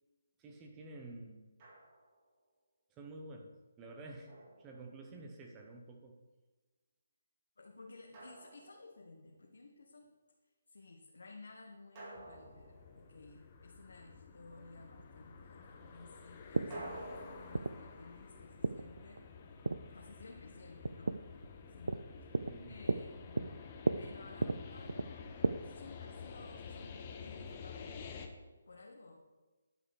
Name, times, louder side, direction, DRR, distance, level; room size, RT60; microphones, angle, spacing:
voice 1, 0.4-1.5 2.9-4.3 4.6-6.2 22.5-22.8, right 2 dB, 15° right, 2 dB, 1.2 m, -50 dB
Drum, 1.6-2.3 4.3-5.4 8.1-9.3 12.0-13.6 16.7-19.7, right 2 dB, 30° right, 3.6 m, -52 dB
voice 2, 7.6-10.1 10.7-19.5 19.9-21.4 21.7-23.7 23.9-25.3 25.6-28.1 28.7-29.3, left 3 dB, 80° left, 0 dB, 1.4 m, -56 dB
sound 1, 12.1-28.3, left 6 dB, 30° left, 1.1 m, -51 dB
sound 2, 14.5-25.5, right 3 dB, 85° right, 0.5 m, -38 dB
11.0 x 5.6 x 6.7 m, 1.2 s
hypercardioid pair, 160°, 0 cm